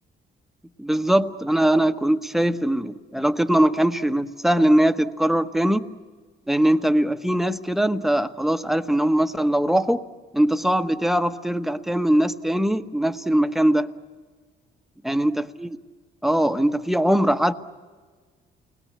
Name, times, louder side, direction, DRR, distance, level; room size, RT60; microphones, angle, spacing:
voice 1, 0.8-5.9 6.5-10.0 10.3-13.9 15.0-15.8 16.2-17.5, right 1 dB, ahead, 9 dB, 1.2 m, -21 dB
29.5 x 21.0 x 8.6 m, 1.5 s
cardioid pair, 90°, 20 cm